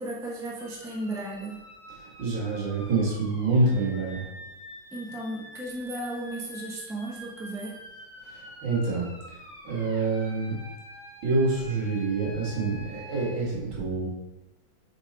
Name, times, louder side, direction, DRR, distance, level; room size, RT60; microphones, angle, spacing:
voice 1, 0.0-1.6 4.9-7.8, right 1 dB, ahead, -4 dB, 0.6 m, -35 dB
sound 1, 0.6-13.3, left 1 dB, 30° left, 1.7 m, -47 dB
voice 2, 2.0-4.2 8.3-9.1 9.6-10.5 11.2-14.1, right 3 dB, 65° right, -5 dB, 2.7 m, -27 dB
5.2 x 5.2 x 4.2 m, 0.98 s
omnidirectional pair, 2.3 m